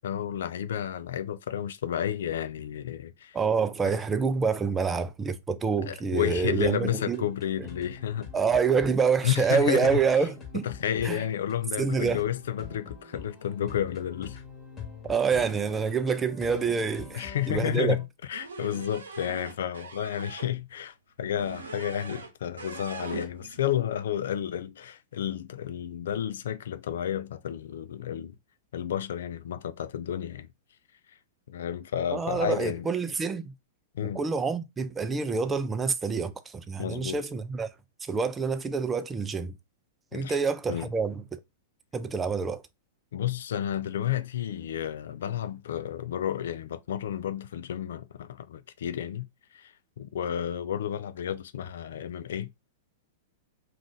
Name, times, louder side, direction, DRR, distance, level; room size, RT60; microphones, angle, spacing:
voice 1, 0.0-3.4 3.9-4.0 5.8-8.3 9.2-10.0 10.6-14.4 17.1-28.4 28.7-30.5 31.5-32.9 33.9-34.2 36.8-37.2 40.1-40.4 40.7-40.9 43.1-49.3 49.5-52.5, left 10 dB, 70° left, 0.4 m, -31 dB
voice 2, 3.3-7.2 8.3-10.7 11.0-11.2 11.8-12.2 15.0-18.0 32.1-33.5 34.1-37.7 38.0-39.5 40.1-41.4 41.9-42.6, right 5 dB, 15° right, 0.4 m, -27 dB
sound 1, 6.2-18.0, left 5 dB, 25° left, 1.2 m, -45 dB
sound 2, 18.3-20.5 21.3-22.3 22.6-23.6, right 4 dB, 90° right, 0.7 m, -41 dB
2.5 x 2.4 x 3.8 m
hypercardioid pair, 110°, 0 cm